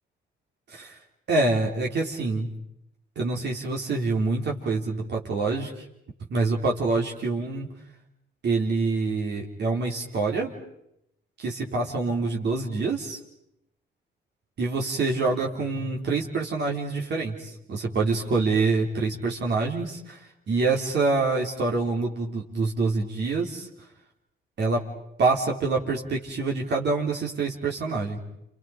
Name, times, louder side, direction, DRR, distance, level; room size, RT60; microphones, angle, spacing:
voice 1, 1.3-2.5 3.2-5.7 6.3-7.7 8.4-10.5 11.4-13.2 14.6-20.2 20.5-23.7 24.6-24.8 25.2-28.2, right 3 dB, 60° right, -1 dB, 3.8 m, -26 dB
29.5 x 28.5 x 5.3 m, 0.79 s
cardioid pair, 90°, 20 cm